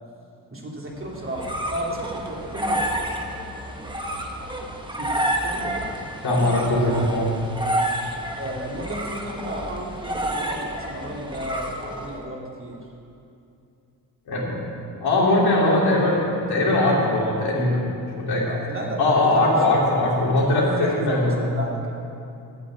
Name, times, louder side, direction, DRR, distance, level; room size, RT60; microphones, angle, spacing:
voice 1, 0.5-3.2 5.0-6.0 6.8-7.1 8.4-12.9 15.5-15.6 18.5-19.6 20.6-21.9, right 1 dB, 30° right, -3 dB, 2.6 m, -33 dB
sound 1, 1.0-12.2, right 1 dB, 10° right, 1.3 m, -30 dB
voice 2, 6.2-7.3 14.3-14.5 15.0-16.2 16.5-17.8 18.1-18.4 19.0-21.5, left 2 dB, 65° left, -5 dB, 3.3 m, -20 dB
9.2 x 7.2 x 8.6 m, 2.7 s
cardioid pair, 70°, 40 cm